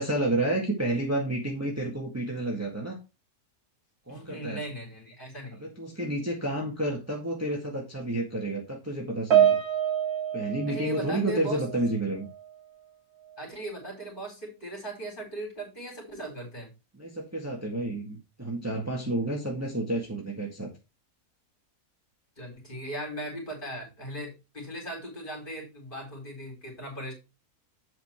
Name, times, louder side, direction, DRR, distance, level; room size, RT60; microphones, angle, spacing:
voice 1, 0.0-3.0 4.1-4.6 5.6-9.6 10.3-12.3 17.0-20.7, right 1 dB, 10° right, -1 dB, 1.6 m, -30 dB
voice 2, 4.1-5.7 10.7-11.6 13.4-16.7 19.6-19.8 22.4-27.1, right 1 dB, 35° left, 0 dB, 4.5 m, -38 dB
Piano, 9.3-12.0 12.2-12.5 13.3-13.4, right 10 dB, 85° right, 2.0 m, -26 dB
8.1 x 5.8 x 4.3 m, 0.27 s
omnidirectional pair, 1.6 m